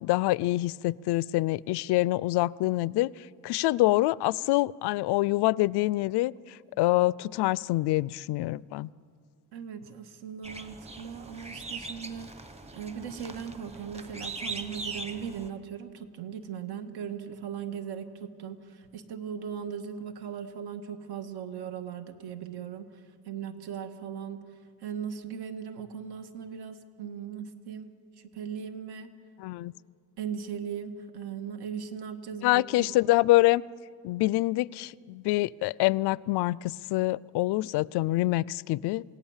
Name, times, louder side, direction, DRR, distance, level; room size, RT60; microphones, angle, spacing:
voice 1, 0.0-8.9 29.4-29.7 32.4-33.6 34.0-39.0, left 18 dB, 85° left, 23 dB, 0.5 m, -26 dB
voice 2, 9.5-12.3 12.7-24.4 24.8-27.9 28.2-29.1 30.2-32.9, right 7 dB, 75° right, 8 dB, 1.8 m, -38 dB
sound 1, 10.4-15.5, right 3 dB, 15° right, 1.1 m, -40 dB
28.0 x 17.5 x 7.3 m, 2.2 s
cardioid pair, 155°, 39 cm